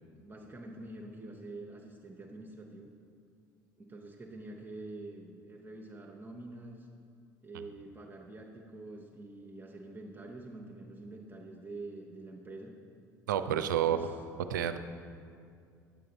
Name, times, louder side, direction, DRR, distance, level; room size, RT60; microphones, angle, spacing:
voice 1, 0.1-2.9 3.8-6.9 7.4-12.7 13.4-14.2, right 2 dB, 20° right, 0 dB, 0.9 m, -46 dB
voice 2, 13.3-14.1 14.5-14.8, right 10 dB, 75° right, 10 dB, 0.4 m, -29 dB
9.4 x 7.6 x 4.0 m, 2.3 s
figure-of-eight pair, 65°, 10 cm